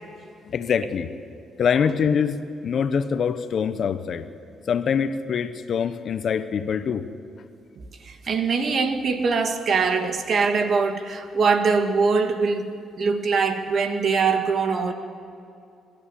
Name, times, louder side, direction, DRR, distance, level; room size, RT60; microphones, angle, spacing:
voice 1, 0.5-1.1 1.6-4.3 4.7-7.1, left 7 dB, 60° left, 11 dB, 1.0 m, -24 dB
voice 2, 7.8-14.9, right 5 dB, 55° right, 6 dB, 1.9 m, -23 dB
22.5 x 12.5 x 9.9 m, 2.5 s
cardioid pair, 90°, 0 cm